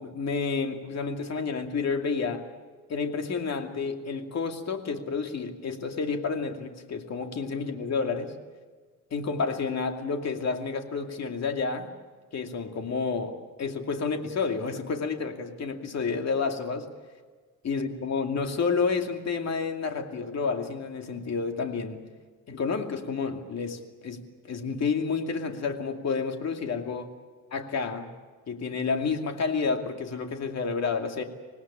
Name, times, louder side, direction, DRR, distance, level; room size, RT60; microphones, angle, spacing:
voice 1, 0.0-2.5 2.9-8.3 9.1-11.9 12.3-16.9 17.6-22.0 22.5-24.2 24.5-27.1 27.5-28.1 28.5-31.2, left 5 dB, 45° left, 4 dB, 2.6 m, -30 dB
25.5 x 19.0 x 8.7 m, 1.5 s
cardioid pair, 130°, 35 cm